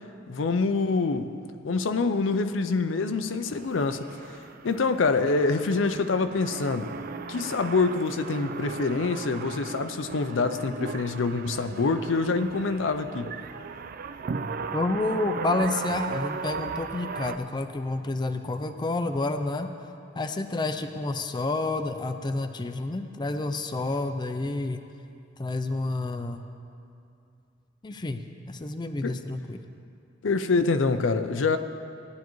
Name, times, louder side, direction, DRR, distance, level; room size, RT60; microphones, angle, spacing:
voice 1, 0.3-1.3 1.6-4.1 4.6-6.9 7.3-13.3 29.0-29.2 30.2-31.6, left 4 dB, 75° left, 9 dB, 0.5 m, -26 dB
sound 1, 3.1-17.4, right 5 dB, 50° right, 0.4 m, -37 dB
voice 2, 14.7-19.7 20.2-24.8 25.4-26.4 27.8-29.6, left 2 dB, 25° left, 7 dB, 0.4 m, -29 dB
18.0 x 10.5 x 3.1 m, 2.5 s
head